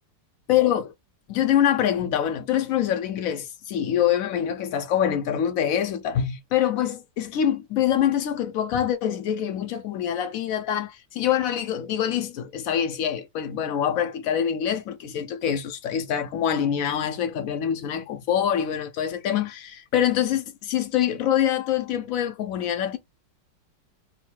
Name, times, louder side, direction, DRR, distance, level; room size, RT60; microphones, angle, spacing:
voice 1, 0.5-0.9 1.3-23.0, left 10 dB, 75° left, 0.7 m, -25 dB
4.0 x 2.0 x 4.4 m
omnidirectional pair, 2.0 m